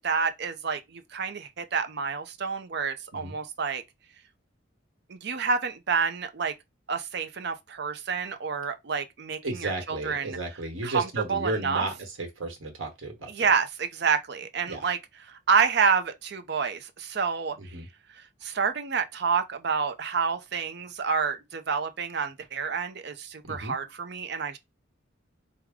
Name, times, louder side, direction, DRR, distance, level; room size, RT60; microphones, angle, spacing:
voice 1, 0.0-3.8 5.1-6.5 6.9-10.4 10.8-11.9 13.3-15.0 15.2-17.8 18.4-24.6, right 5 dB, 55° right, 0.6 m, -28 dB
voice 2, 9.4-13.3 14.7-14.8 17.6-17.9 23.4-23.7, right 2 dB, 90° right, 1.4 m, -33 dB
4.8 x 2.2 x 3.6 m
head